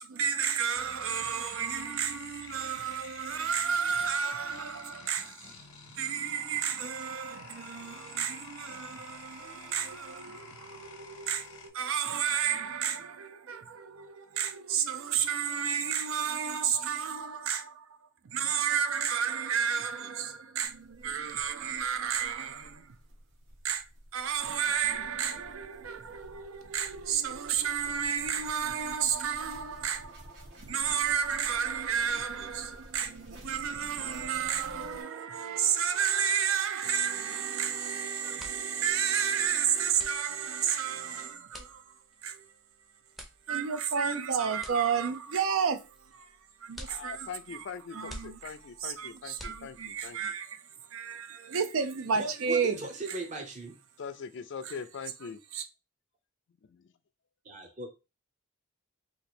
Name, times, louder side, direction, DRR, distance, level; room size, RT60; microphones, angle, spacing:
voice 1, 0.0-5.5 6.0-18.0 18.2-23.0 23.6-23.9 24.1-41.8 42.2-42.4 43.5-46.3 46.6-47.6 47.9-48.5 48.8-50.6 50.9-52.8 54.6-54.7 55.5-55.6, right 7 dB, 80° right, 0.5 m, -31 dB
sound 1, 0.7-11.7, left 4 dB, 85° left, 0.9 m, -49 dB
sound 2, 20.6-35.0, equal, 65° right, 0.9 m, -52 dB
sound 3, 38.2-50.1, equal, ahead, 0.5 m, -50 dB
voice 2, 46.8-50.2 54.0-55.4 56.7-56.9, left 6 dB, 60° left, 0.4 m, -42 dB
voice 3, 52.1-53.8 57.4-57.9, right 2 dB, 35° right, 0.7 m, -38 dB
3.0 x 2.5 x 4.2 m
head